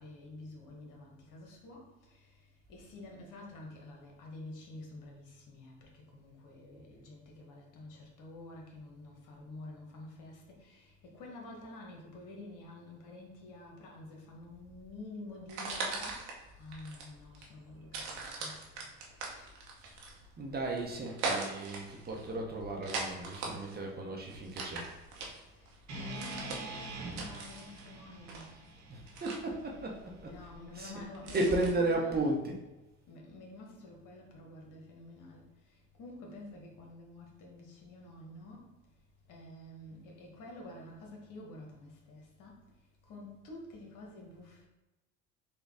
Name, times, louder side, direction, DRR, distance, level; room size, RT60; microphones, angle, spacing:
voice 1, 0.0-2.3 2.7-18.9 19.3-19.6 25.5-28.4 30.2-32.2 33.1-38.7 39.3-42.6 43.1-44.7, left 2 dB, 60° left, 0 dB, 1.1 m, -49 dB
sound 1, 15.4-31.7, right 3 dB, 75° right, 0.9 m, -41 dB
voice 2, 20.4-24.9 28.9-30.3 30.7-30.9 31.3-32.6, right 2 dB, 25° right, 0 dB, 0.8 m, -34 dB
sound 2, 25.9-30.1, right 2 dB, 50° right, 1.1 m, -45 dB
4.1 x 2.3 x 3.4 m, 1.0 s
hypercardioid pair, 70°, 36 cm